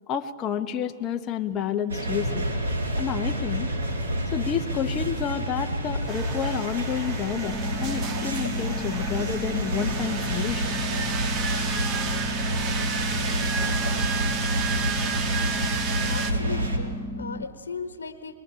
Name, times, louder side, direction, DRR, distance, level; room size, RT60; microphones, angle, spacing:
voice 1, 0.1-2.5 3.0-3.7 4.3-10.8, left 8 dB, 25° left, 5 dB, 0.9 m, -30 dB
sound 1, 1.9-16.8, equal, 75° right, 4.7 m, -29 dB
sound 2, 6.1-16.3, right 6 dB, 30° right, 1.6 m, -32 dB
sound 3, 7.4-17.4, equal, 5° left, 0.6 m, -35 dB
voice 2, 16.0-18.4, left 5 dB, 70° left, 9 dB, 1.3 m, -37 dB
23.0 x 21.5 x 8.7 m, 2.1 s
figure-of-eight pair, 110°, 0 cm